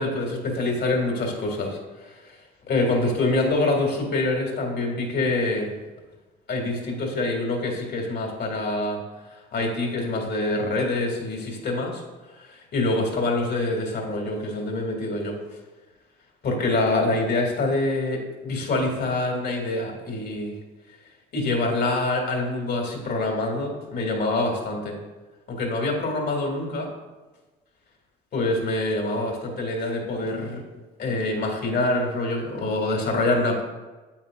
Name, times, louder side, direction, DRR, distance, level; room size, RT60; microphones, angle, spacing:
voice 1, 0.0-2.4 2.7-5.7 6.5-9.0 9.3-12.0 12.3-15.4 16.4-20.5 21.3-25.0 25.5-26.9 28.3-30.6 31.0-33.6, left 2 dB, 50° left, 1 dB, 2.5 m, -25 dB
8.8 x 8.3 x 2.5 m, 1.2 s
hypercardioid pair, 60°, 21 cm